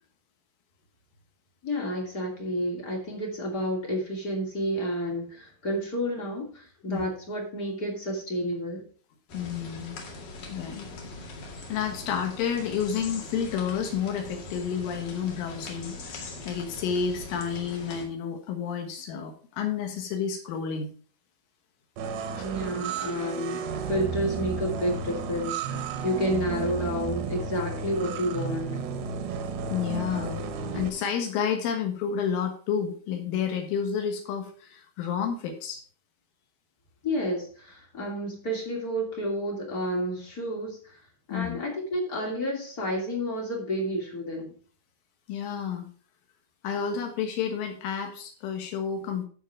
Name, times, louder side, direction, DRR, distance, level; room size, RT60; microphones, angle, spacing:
voice 1, 1.6-8.8 22.4-28.7 37.0-41.0 41.3-44.5, equal, 30° left, -1 dB, 1.7 m, -30 dB
voice 2, 9.3-10.0 10.5-10.9 11.7-20.9 22.4-22.5 29.7-30.5 30.7-35.8 41.3-41.6 45.3-45.9 46.6-49.3, left 7 dB, 75° left, 3 dB, 3.7 m, -30 dB
sound 1, 9.3-18.1, left 2 dB, 50° left, 3.1 m, -41 dB
sound 2, 22.0-30.9, right 6 dB, 85° right, 2.1 m, -33 dB
14.0 x 5.0 x 4.5 m, 0.42 s
omnidirectional pair, 5.9 m